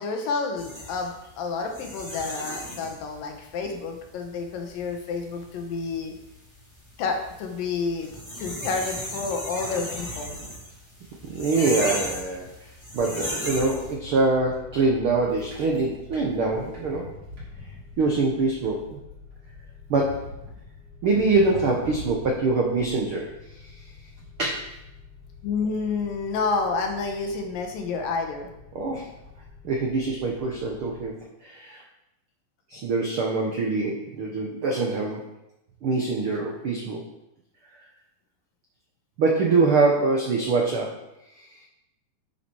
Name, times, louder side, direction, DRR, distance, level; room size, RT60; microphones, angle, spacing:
voice 1, 0.0-6.1 7.0-8.1 8.4-10.4 25.4-28.5, left 4 dB, 75° left, 3 dB, 2.8 m, -29 dB
sound 1, 0.6-13.9, equal, 10° left, 1.9 m, -36 dB
voice 2, 11.2-12.7 12.9-17.1 18.0-19.0 19.9-20.3 21.0-23.7 24.4-24.7 28.7-29.1 29.6-31.8 32.7-35.2 35.8-37.0 39.2-41.0 41.4-41.6, right 3 dB, 70° right, -1 dB, 1.2 m, -24 dB
sound 2, 13.5-31.1, left 3 dB, 35° right, 3.6 m, -44 dB
11.5 x 6.0 x 4.7 m, 0.88 s
omnidirectional pair, 4.1 m